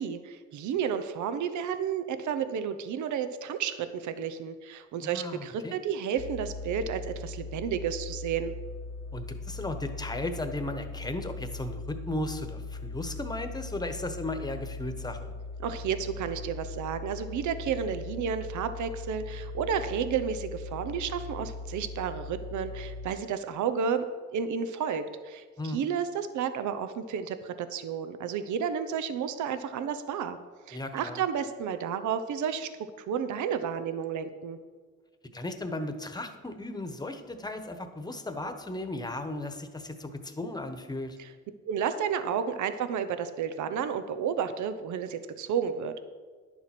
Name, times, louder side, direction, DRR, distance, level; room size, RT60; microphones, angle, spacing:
voice 1, 0.0-8.5 15.6-24.1 24.3-30.4 30.7-32.7 33.0-34.6 41.2-41.3 41.7-46.0, right 7 dB, 75° right, 11 dB, 0.8 m, -31 dB
voice 2, 5.0-5.8 9.1-15.3 25.6-25.8 30.7-31.2 35.3-41.2, left 2 dB, 15° left, 8 dB, 1.2 m, -36 dB
sound 1, 6.2-23.1, left 3 dB, 50° left, 0.7 m, -40 dB
10.5 x 7.1 x 6.0 m, 1.5 s
cardioid pair, 90°, 30 cm